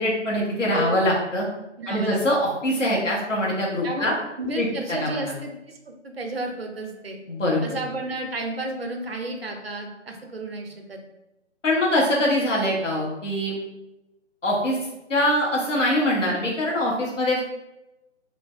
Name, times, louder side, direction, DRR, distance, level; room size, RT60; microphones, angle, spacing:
voice 1, 0.0-1.5 1.9-4.1 4.6-5.3 7.3-7.8 11.6-13.6 14.4-14.8 15.1-17.4, left 1 dB, 80° left, -3 dB, 1.2 m, -23 dB
voice 2, 1.8-2.2 3.8-4.1 4.4-7.2 7.6-11.0, right 2 dB, 55° right, 3 dB, 0.5 m, -32 dB
3.1 x 2.5 x 2.3 m, 0.96 s
figure-of-eight pair, 160°, 37 cm